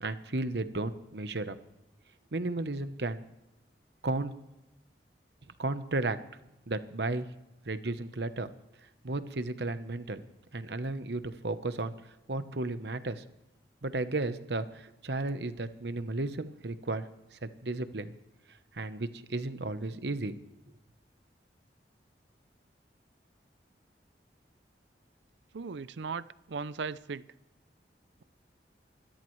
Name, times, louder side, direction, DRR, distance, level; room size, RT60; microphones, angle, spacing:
voice 1, 0.0-1.6 2.3-3.2 4.0-4.3 5.6-6.2 6.7-7.3 7.7-8.5 9.0-10.2 10.5-11.9 12.3-13.2 13.8-18.1 18.7-20.3, right 2 dB, 70° right, 1.0 m, -34 dB
voice 2, 25.5-27.3, right 5 dB, 85° right, 0.5 m, -37 dB
25.0 x 13.0 x 3.2 m
head